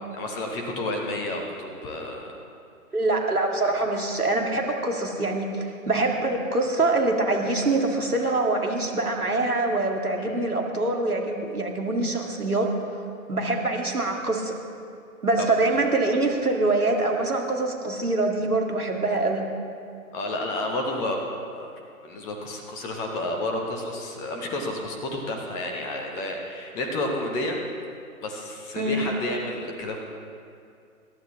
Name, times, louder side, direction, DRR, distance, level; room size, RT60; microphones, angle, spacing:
voice 1, 0.1-2.3 3.6-3.8 10.2-10.3 15.4-15.5 20.1-21.3 21.5-21.7 22.0-27.6 28.2-30.0, left 1 dB, 10° left, 2 dB, 0.6 m, -30 dB
voice 2, 2.9-12.7 13.3-14.5 15.2-19.5 28.8-29.1, right 2 dB, 90° right, 1 dB, 2.3 m, -24 dB
26.0 x 12.0 x 3.2 m, 2.4 s
figure-of-eight pair, 130°, 43 cm